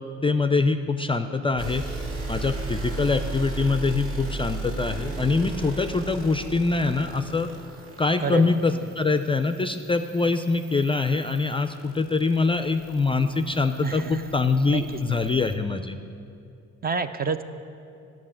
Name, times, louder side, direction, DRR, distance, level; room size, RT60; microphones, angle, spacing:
voice 1, 0.0-1.8 2.3-7.5 8.0-16.0, left 3 dB, 20° left, 8 dB, 0.4 m, -24 dB
sound 1, 1.6-15.5, right 2 dB, 50° right, 2.1 m, -36 dB
voice 2, 8.2-8.8 13.8-14.2 14.7-15.2 16.8-17.4, right 5 dB, 30° right, 10 dB, 0.5 m, -29 dB
11.0 x 6.0 x 8.7 m, 2.5 s
cardioid pair, 90°, 30 cm